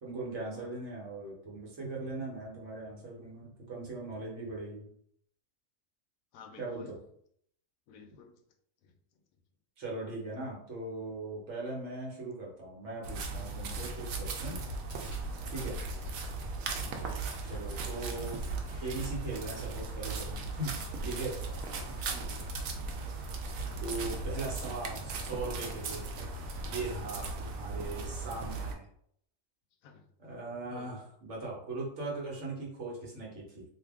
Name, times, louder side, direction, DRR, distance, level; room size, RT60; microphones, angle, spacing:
voice 1, 0.0-4.9 6.6-6.8 9.8-14.6 15.5-15.8 17.5-18.4 18.8-20.7 21.0-21.3 23.8-26.1 26.7-28.9 30.2-33.6, right 2 dB, 60° right, -3 dB, 1.3 m, -39 dB
voice 2, 6.3-6.9 7.9-8.4 8.8-8.9 15.5-15.7 18.0-18.3 21.8-22.8 29.8-30.1 30.7-31.0, left 6 dB, 85° left, 5 dB, 1.0 m, -54 dB
sound 1, 13.0-28.7, right 3 dB, 80° right, 1.0 m, -37 dB
sound 2, 14.9-15.4 15.8-16.3 16.8-17.6 18.0-18.8 19.3-19.9 20.5-21.2 21.6-22.1, right 1 dB, 20° right, 0.9 m, -60 dB
sound 3, 17.3-27.6, equal, 45° left, 0.9 m, -60 dB
2.7 x 2.5 x 3.5 m, 0.67 s
omnidirectional pair, 1.4 m